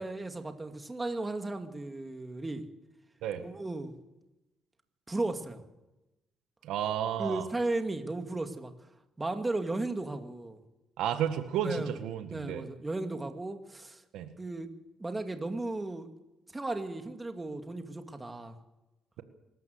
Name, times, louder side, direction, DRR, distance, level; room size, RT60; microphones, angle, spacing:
voice 1, 0.0-2.6 3.4-4.0 5.1-5.6 7.2-8.7 9.2-10.6 11.6-12.0 12.3-14.0 14.4-14.7 15.0-16.1 16.5-18.5, right 2 dB, 20° right, 6 dB, 2.2 m, -35 dB
voice 2, 6.6-7.5 11.0-12.7 14.1-14.3, right 9 dB, 90° right, 9 dB, 1.7 m, -32 dB
24.0 x 13.5 x 8.0 m, 0.98 s
cardioid pair, 90°, 0 cm